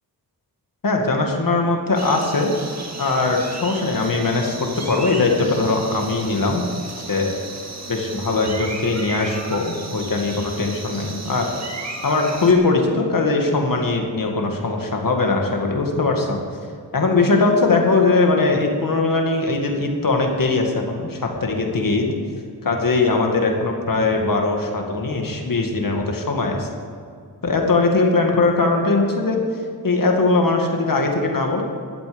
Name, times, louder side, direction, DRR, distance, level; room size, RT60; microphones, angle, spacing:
voice 1, 0.8-2.5 3.0-6.7 7.1-7.3 7.9-11.5 12.0-16.4 16.9-22.1 22.6-26.7 27.4-29.4 29.8-31.6, left 3 dB, 55° left, 2 dB, 2.1 m, -20 dB
sound 1, 1.9-12.5, right 3 dB, 40° right, 2.1 m, -34 dB
16.0 x 12.5 x 5.3 m, 2.3 s
wide cardioid pair, 125°, 39 cm